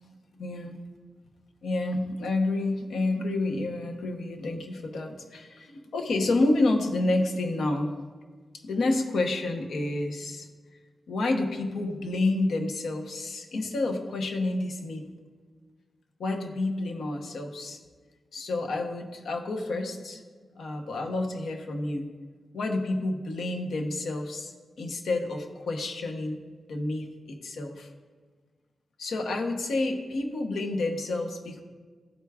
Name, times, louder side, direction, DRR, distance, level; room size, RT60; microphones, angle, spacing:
voice 1, 0.4-0.8 1.6-8.1 8.6-10.5 11.1-15.1 16.2-17.8 18.3-20.2 20.5-22.1 22.5-26.4 26.7-27.9 29.0-31.6, left 2 dB, 85° left, 3 dB, 0.8 m, -29 dB
12.0 x 4.7 x 2.3 m, 1.5 s
wide cardioid pair, 115°, 0 cm